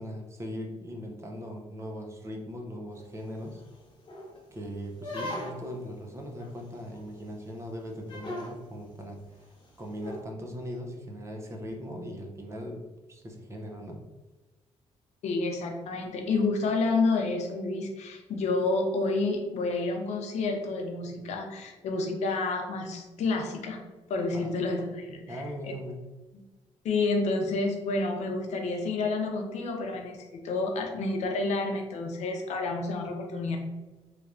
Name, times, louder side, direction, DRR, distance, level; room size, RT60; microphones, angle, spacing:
voice 1, 0.0-3.6 4.5-9.5 9.8-12.8 13.1-14.0 24.3-24.5 25.1-26.2, equal, 25° right, 1 dB, 0.6 m, -39 dB
sound 1, 2.9-3.0 3.5-3.6 4.1-4.4 5.0-5.8 6.4-6.5 6.9-7.0 7.3-7.4 8.1-8.5 10.0-10.2, left 1 dB, 45° left, 1.0 m, -38 dB
voice 2, 15.2-23.8 24.1-25.7 26.8-33.6, left 3 dB, 75° left, 3 dB, 0.6 m, -29 dB
3.3 x 3.0 x 2.5 m, 1.2 s
cardioid pair, 120°, 12 cm